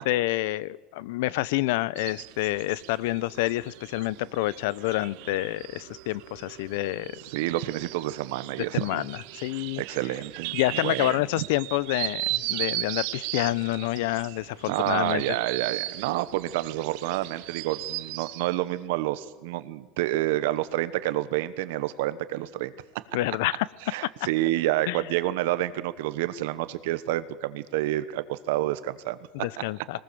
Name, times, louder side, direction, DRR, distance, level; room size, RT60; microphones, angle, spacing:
voice 1, 0.0-7.1 8.7-9.8 10.5-15.2 23.1-23.7 24.9-25.0 29.3-30.0, left 17 dB, 75° left, 21 dB, 0.6 m, -28 dB
sound 1, 2.0-18.6, right 19 dB, 60° right, 0.8 m, -37 dB
voice 2, 7.3-9.0 9.5-11.5 14.6-22.7 23.9-29.2, right 15 dB, 80° right, 13 dB, 1.2 m, -29 dB
22.5 x 19.5 x 7.0 m, 1.2 s
cardioid pair, 165°, 0 cm